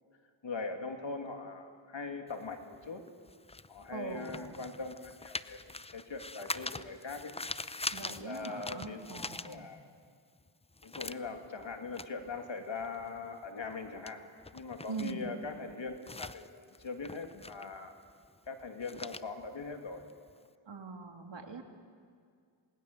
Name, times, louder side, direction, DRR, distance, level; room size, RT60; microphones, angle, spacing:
voice 1, 0.4-3.0 3.7-7.3 8.2-9.8 10.8-14.2 14.5-17.9 18.5-20.0, left 4 dB, 65° left, 4 dB, 2.7 m, -41 dB
sound 1, 2.3-10.1 10.4-20.5, left 3 dB, 15° left, 0.6 m, -44 dB
voice 2, 3.9-4.6 7.9-9.7 14.9-15.3 20.7-21.6, right 4 dB, 60° right, 3 dB, 3.1 m, -42 dB
28.0 x 19.5 x 6.9 m, 2.1 s
cardioid pair, 45°, 49 cm